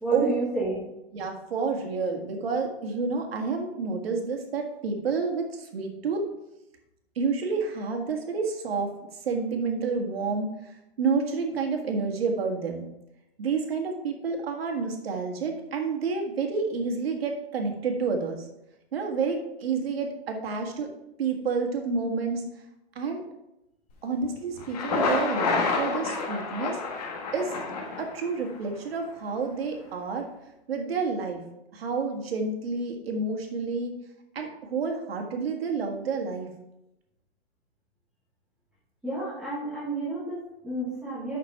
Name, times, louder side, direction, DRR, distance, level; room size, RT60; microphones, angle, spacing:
voice 1, 0.0-0.8 39.0-41.4, right 2 dB, ahead, -11 dB, 1.0 m, -30 dB
voice 2, 1.1-6.2 7.1-12.9 13.4-18.5 18.9-20.9 21.2-22.4 22.9-23.2 24.0-26.8 27.3-27.5 28.0-30.3 30.7-31.4 31.7-34.0 34.3-36.5, right 4 dB, 65° right, 3 dB, 1.8 m, -29 dB
Thunder, 24.6-28.6, left 4 dB, 35° left, 1.4 m, -29 dB
6.1 x 6.0 x 5.7 m, 0.89 s
hypercardioid pair, 175°, 32 cm